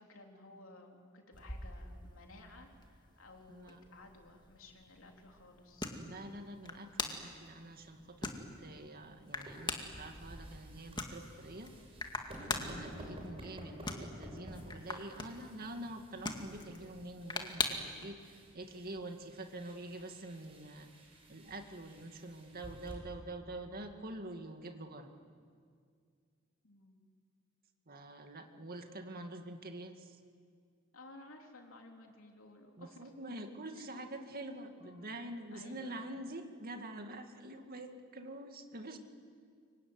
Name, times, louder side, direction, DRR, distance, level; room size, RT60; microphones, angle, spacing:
voice 1, 0.0-5.9 26.6-27.1 30.9-33.1 33.7-33.9 34.7-35.1 35.5-36.0, left 2 dB, 65° left, 2 dB, 3.7 m, -56 dB
sound 1, 1.3-18.1, left 3 dB, 20° left, 2.1 m, -44 dB
voice 2, 3.5-3.8 5.9-11.8 12.5-20.9 21.3-25.1 27.9-30.2 32.8-39.0, right 1 dB, 45° right, 5 dB, 2.2 m, -46 dB
sound 2, 9.0-22.9, equal, 25° right, 6.8 m, -52 dB
25.5 x 24.0 x 9.7 m, 2.1 s
head